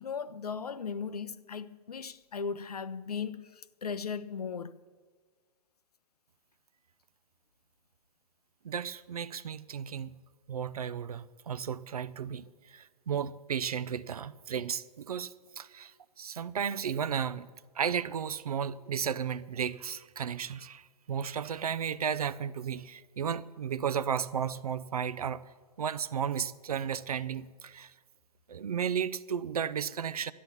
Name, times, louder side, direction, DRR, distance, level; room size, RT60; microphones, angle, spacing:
voice 1, 0.0-4.8, left 6 dB, 75° left, 0.6 m, -37 dB
voice 2, 8.6-10.2 10.5-17.5 17.8-25.5 25.8-27.9 28.5-30.3, right 7 dB, 70° right, 0.5 m, -34 dB
12.5 x 10.5 x 7.1 m
figure-of-eight pair, 110°, 20 cm